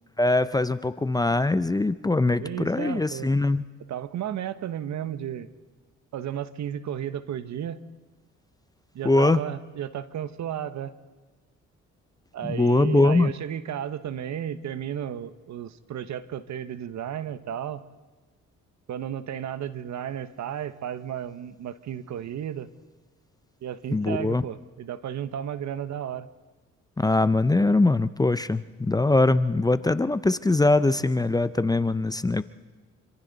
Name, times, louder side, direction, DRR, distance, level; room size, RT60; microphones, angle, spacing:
voice 1, 0.2-3.6 9.0-9.4 12.5-13.3 23.9-24.4 27.0-32.4, left 2 dB, 15° left, 13 dB, 0.6 m, -22 dB
voice 2, 2.2-3.3 3.9-5.5 6.1-7.8 8.9-10.9 12.3-17.8 18.9-22.7 23.6-26.3, right 10 dB, 65° right, 13 dB, 1.1 m, -33 dB
26.5 x 26.0 x 4.1 m, 1.3 s
cardioid pair, 90°, 30 cm